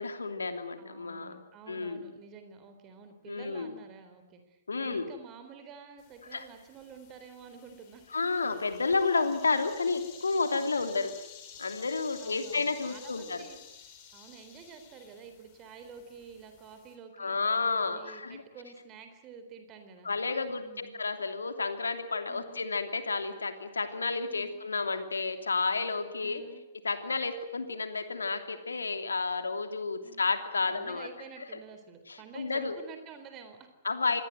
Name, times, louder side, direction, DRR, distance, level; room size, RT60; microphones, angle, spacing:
voice 1, 0.0-1.4 1.7-2.1 3.3-3.7 4.7-5.0 6.3-6.4 8.1-11.1 11.6-13.5 17.2-18.4 20.0-26.4 26.8-31.1 32.1-32.8 33.8-34.2, left 4 dB, 70° left, 7 dB, 3.0 m, -31 dB
voice 2, 0.8-8.0 10.8-11.1 12.2-13.6 14.1-17.4 17.8-20.1 20.5-21.0 22.3-22.7 24.3-24.6 26.2-26.6 30.0-30.3 30.7-33.7, right 6 dB, 25° right, 7 dB, 3.8 m, -50 dB
sound 1, 6.0-17.0, left 8 dB, 30° left, 5.2 m, -52 dB
26.5 x 20.0 x 9.4 m, 0.91 s
figure-of-eight pair, 115°, 0 cm